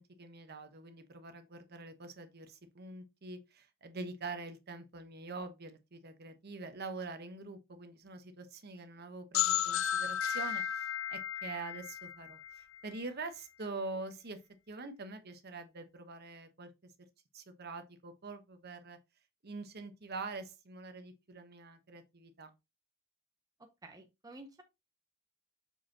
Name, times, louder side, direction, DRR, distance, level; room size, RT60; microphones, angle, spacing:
voice 1, 0.0-14.4 14.7-16.9 17.3-19.0 19.4-22.5, right 3 dB, 50° right, 1.0 m, -45 dB
sound 1, 9.3-13.0, left 10 dB, 70° left, 0.4 m, -34 dB
voice 2, 23.8-24.6, right 2 dB, 20° right, 0.7 m, -51 dB
6.5 x 5.2 x 2.8 m
head